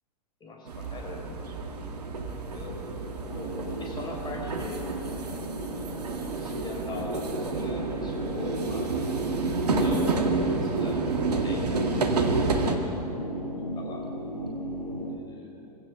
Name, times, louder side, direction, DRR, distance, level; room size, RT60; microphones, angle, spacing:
voice 1, 0.4-1.4 2.5-5.0 6.3-9.0 9.8-11.7 12.6-13.0 13.7-14.1 15.0-15.5, left 2 dB, 20° left, 0 dB, 5.3 m, -40 dB
sound 1, 0.7-12.8, right 3 dB, 75° right, 2.1 m, -29 dB
sound 2, 3.3-15.1, equal, 85° left, 6.6 m, -37 dB
Run / Slam, 5.9-8.8 9.0-9.2 9.6-10.1, right 5 dB, 45° right, 6.3 m, -46 dB
24.0 x 17.0 x 6.6 m, 2.9 s
figure-of-eight pair, 100°, 20 cm